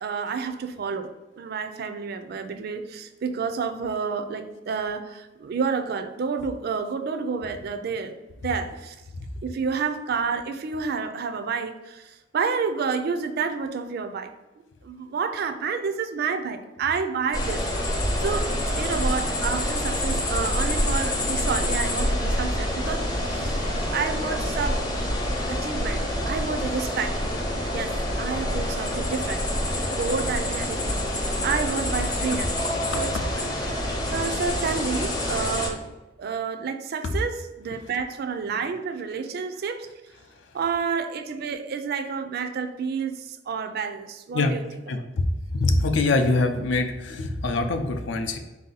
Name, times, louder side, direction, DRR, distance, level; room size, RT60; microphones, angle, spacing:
voice 1, 0.0-8.1 8.4-9.0 9.4-14.3 14.8-17.9 18.2-18.5 18.8-23.6 23.9-24.8 25.5-27.2 27.7-29.4 29.9-31.0 31.4-32.5 33.0-33.8 34.1-35.8 36.2-39.9 40.5-44.6, right 5 dB, 55° right, 9 dB, 0.4 m, -29 dB
sound 1, 17.3-35.7, left 1 dB, 20° left, 0.6 m, -27 dB
voice 2, 45.5-48.4, left 2 dB, 75° left, 7 dB, 0.5 m, -24 dB
4.0 x 2.7 x 3.9 m, 1.1 s
head